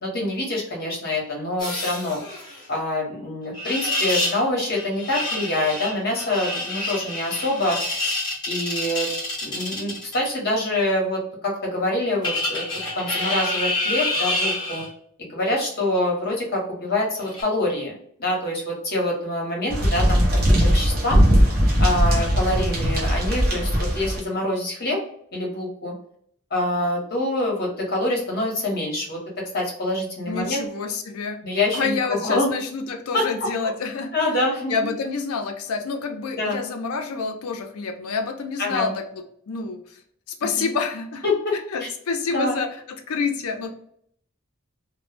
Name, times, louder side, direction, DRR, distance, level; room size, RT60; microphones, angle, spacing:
voice 1, 0.0-2.4 2.7-7.8 8.5-9.1 9.4-12.6 12.9-14.8 15.2-17.9 18.2-20.2 20.6-21.2 21.8-25.0 25.3-25.9 26.5-29.2 29.5-30.6 31.4-32.5 33.1-33.5 34.1-34.7 36.4-36.6 38.6-38.9 40.4-40.7 41.2-41.5 42.3-42.6, left 1 dB, 45° left, -2 dB, 0.8 m, -25 dB
sound 1, 1.6-2.6 3.5-4.4 4.7-10.3 12.2-14.9 17.2-17.4, left 2 dB, 20° left, 0.8 m, -27 dB
sound 2, 19.7-24.2, equal, 45° right, 0.6 m, -19 dB
voice 2, 30.3-31.4 31.7-34.1 34.7-39.8 40.4-41.2 41.7-43.7, left 4 dB, 90° left, 6 dB, 0.4 m, -28 dB
2.1 x 2.0 x 3.1 m, 0.65 s
head